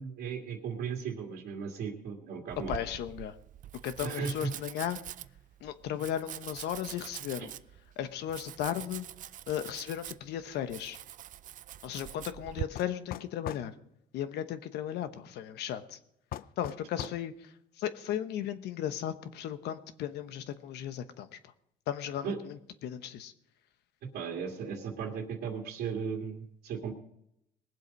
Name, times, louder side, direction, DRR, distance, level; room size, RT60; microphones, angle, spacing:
voice 1, 0.0-2.8 4.0-4.5 7.4-7.5 17.0-17.1 22.2-22.4 24.1-26.9, right 6 dB, 75° right, -4 dB, 2.0 m, -36 dB
Domestic sounds home sounds, 2.5-12.7, right 12 dB, 50° right, 0.4 m, -44 dB
voice 2, 2.7-3.3 3.8-5.0 5.6-7.5 8.0-9.1 9.5-11.0 11.8-13.7 14.1-16.0 16.6-21.5 21.9-23.3, left 10 dB, 80° left, 11 dB, 1.1 m, -36 dB
sound 1, 12.8-13.7 16.3-17.2, left 12 dB, 60° left, 0.5 m, -40 dB
20.0 x 7.8 x 5.3 m, 0.77 s
cardioid pair, 110°, 17 cm